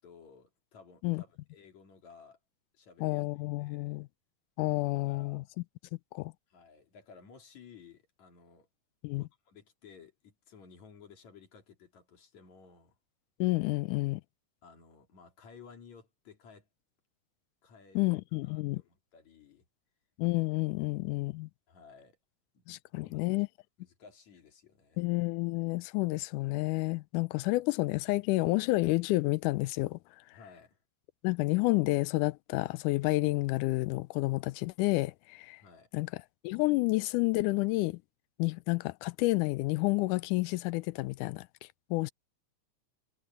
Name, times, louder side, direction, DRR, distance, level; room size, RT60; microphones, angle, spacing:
voice 1, 0.0-2.4 2.7-3.2 3.6-4.0 5.1-5.4 6.5-8.7 9.1-13.0 14.6-16.7 17.6-18.2 18.4-19.7 21.7-22.2 22.5-22.6 22.9-23.4 23.8-25.0 30.3-30.8 35.6-35.9, left 6 dB, 65° left, 4.2 m, -56 dB
voice 2, 3.0-4.1 4.6-5.4 6.1-6.3 9.0-9.2 13.4-14.2 18.0-18.8 20.2-21.5 22.7-23.5 25.0-30.0 31.2-35.6 35.9-36.1 36.4-38.0 38.4-41.5 41.9-42.1, left 21 dB, 85° left, 2.1 m, -30 dB
omnidirectional pair, 3.5 m